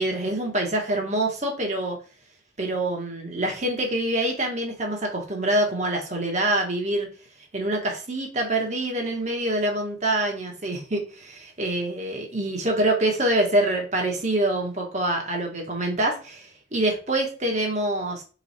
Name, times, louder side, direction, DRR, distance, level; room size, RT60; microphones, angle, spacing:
voice 1, 0.0-2.0 2.6-7.1 7.5-18.2, right 1 dB, 40° right, 1 dB, 1.2 m, -25 dB
3.9 x 3.1 x 4.1 m, 0.36 s
head